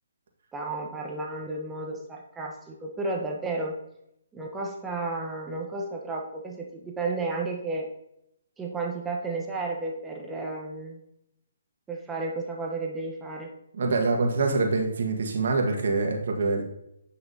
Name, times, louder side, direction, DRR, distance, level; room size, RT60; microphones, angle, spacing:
voice 1, 0.5-3.8 4.3-7.9 8.6-11.0 11.9-13.5, right 3 dB, 10° right, 0 dB, 0.9 m, -32 dB
voice 2, 13.8-16.6, right 3 dB, 60° right, 2 dB, 1.5 m, -25 dB
8.5 x 5.8 x 2.7 m, 0.82 s
hypercardioid pair, 150°, 0 cm